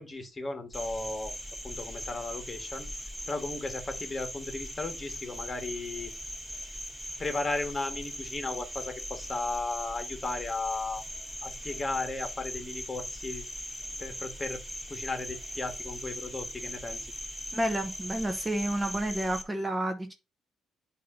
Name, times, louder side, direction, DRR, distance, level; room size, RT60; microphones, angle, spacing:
voice 1, 0.0-1.3 1.6-2.9 3.3-6.1 7.2-11.0 11.4-13.4 14.0-14.6 14.9-17.0, left 3 dB, 25° left, 1.7 m, -35 dB
Cricket, 0.7-19.4, equal, ahead, 2.6 m, -40 dB
voice 2, 17.5-20.1, right 1 dB, 15° right, 1.0 m, -30 dB
8.3 x 2.9 x 5.6 m
cardioid pair, 90°, 0 cm